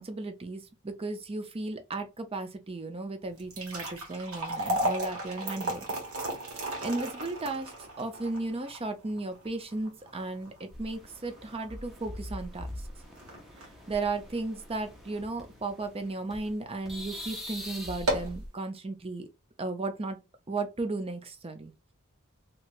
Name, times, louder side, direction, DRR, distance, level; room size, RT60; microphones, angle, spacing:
voice 1, 0.0-5.8 6.8-7.7 8.0-12.7 13.9-19.3 19.6-20.2 20.5-21.7, right 3 dB, 25° right, 0.6 m, -35 dB
sound 1, 3.3-15.6 16.0-16.1 16.8-17.0 17.3-17.4 17.9-18.4, right 1 dB, 70° right, 1.5 m, -35 dB
sound 2, 10.7-16.5 16.8-18.5, left 1 dB, ahead, 0.8 m, -43 dB
3.3 x 2.9 x 2.5 m
head